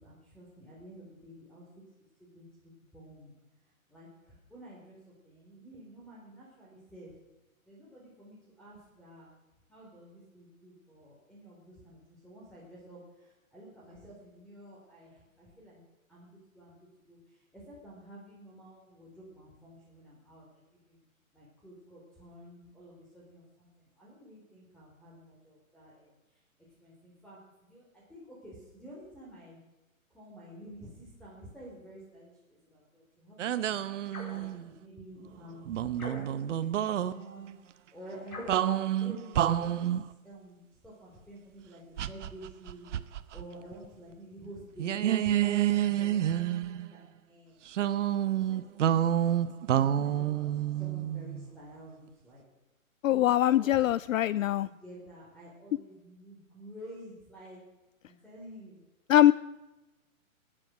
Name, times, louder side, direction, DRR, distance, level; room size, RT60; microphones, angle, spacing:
voice 1, 0.0-1.6 2.2-3.3 3.9-5.0 5.2-7.1 7.7-9.3 9.7-13.0 13.5-15.1 15.4-15.8 16.1-16.8 17.1-17.2 17.5-20.4 20.9-21.0 21.3-23.7 24.0-26.1 26.8-29.6 30.1-32.3 32.7-33.7 34.3-37.6 37.9-39.9 40.2-42.9 43.3-47.6 48.2-49.4 49.7-50.5 50.8-52.4 53.1-53.8 54.2-54.3 54.6-57.6 58.1-58.8, right 1 dB, ahead, -6 dB, 3.6 m, -50 dB
sound 1, 33.4-34.7 35.7-37.1 38.5-40.1 42.0-43.4 43.7-43.9 44.8-46.9 47.7-51.5, right 11 dB, 60° right, 0.9 m, -29 dB
sound 2, 34.1-34.5 35.9-36.5 38.3-38.7, left 2 dB, 85° left, 4.6 m, -43 dB
voice 2, 53.0-54.7 59.1-59.3, left 13 dB, 65° left, 18 dB, 0.5 m, -22 dB
20.0 x 10.0 x 6.1 m, 1.0 s
hypercardioid pair, 130°, 42 cm